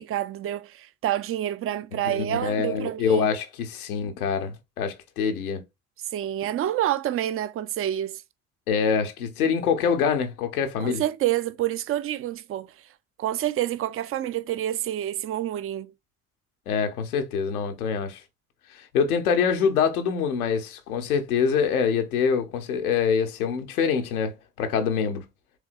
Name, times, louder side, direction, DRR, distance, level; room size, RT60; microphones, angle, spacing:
voice 1, 0.0-3.3 6.1-8.2 10.8-12.7 13.2-15.9, right 12 dB, 30° right, 0.5 m, -28 dB
voice 2, 1.9-5.6 8.7-11.0 16.7-18.2 18.7-25.2, left 6 dB, 85° left, 0.8 m, -25 dB
4.8 x 3.4 x 2.4 m
hypercardioid pair, 55°, 43 cm